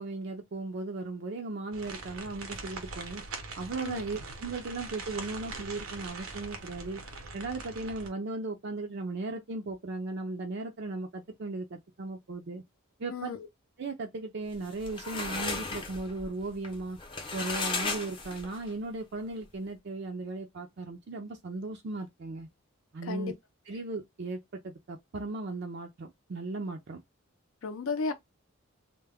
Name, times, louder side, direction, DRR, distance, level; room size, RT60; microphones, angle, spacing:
voice 1, 0.0-3.2 3.6-7.0 7.3-12.6 13.0-13.3 13.8-17.0 17.3-22.5 22.9-23.3 23.7-27.0, right 3 dB, 55° right, 0.4 m, -37 dB
sound 1, 1.7-8.1, right 3 dB, 85° right, 0.7 m, -42 dB
voice 2, 13.1-13.5 23.0-23.3 27.6-28.1, left 4 dB, 70° left, 0.5 m, -34 dB
sound 2, 14.5-18.7, left 3 dB, 25° left, 0.6 m, -35 dB
2.2 x 2.1 x 3.4 m
head